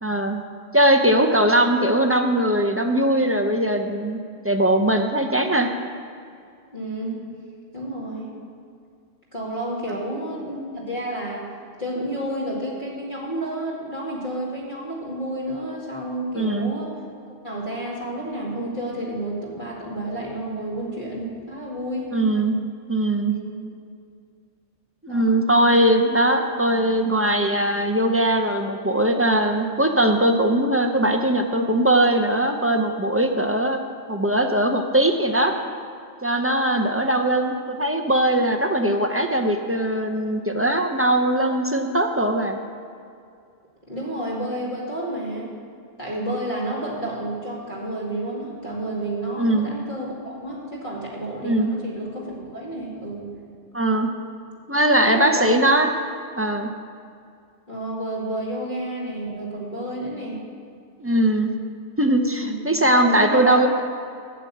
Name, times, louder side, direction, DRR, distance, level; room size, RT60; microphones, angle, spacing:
voice 1, 0.0-0.4 0.7-4.2 4.4-5.7 9.9-10.0 16.4-16.7 22.1-22.6 22.9-23.4 25.0-33.8 34.1-35.5 36.2-42.6 49.4-49.7 51.4-51.7 53.7-54.1 54.7-55.9 56.4-56.7 61.0-61.5 62.0-63.7, right 1 dB, 15° right, 4 dB, 0.5 m, -20 dB
voice 2, 6.7-7.2 7.7-8.3 9.3-11.5 11.8-16.9 17.4-22.1 23.3-23.6 25.1-25.3 36.8-36.9 43.9-45.5 46.0-53.3 55.0-55.6 57.7-60.4 62.4-62.7 63.0-63.6, right 1 dB, 40° left, -6 dB, 2.4 m, -30 dB
9.1 x 7.3 x 8.4 m, 2.3 s
omnidirectional pair, 1.2 m